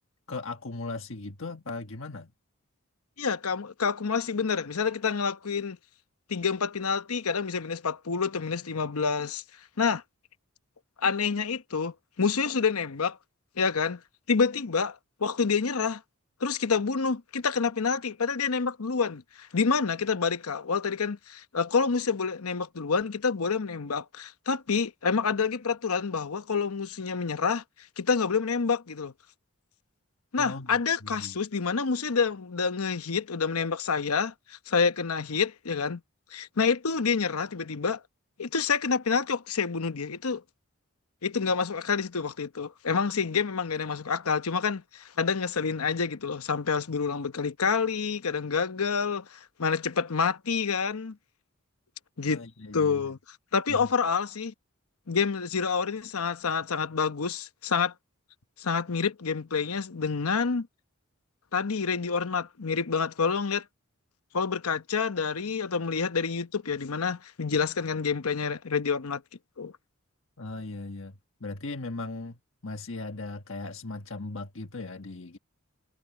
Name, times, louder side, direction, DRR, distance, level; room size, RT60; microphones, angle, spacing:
voice 1, 0.3-2.3 30.4-30.8 31.0-31.4 52.3-53.0 53.7-53.9 70.4-71.1 71.4-75.4, left 3 dB, 65° left, 1.4 m, -38 dB
voice 2, 3.2-5.8 6.3-9.4 9.8-10.0 11.0-13.2 13.6-14.0 14.3-16.0 16.4-27.6 28.0-29.1 30.3-36.0 36.3-38.0 38.4-40.4 41.2-51.2 52.2-52.4 52.7-53.2 53.5-54.5 55.1-57.9 58.6-60.7 61.5-63.6 64.3-69.2 69.6-69.7, left 5 dB, 85° left, 0.9 m, -28 dB
head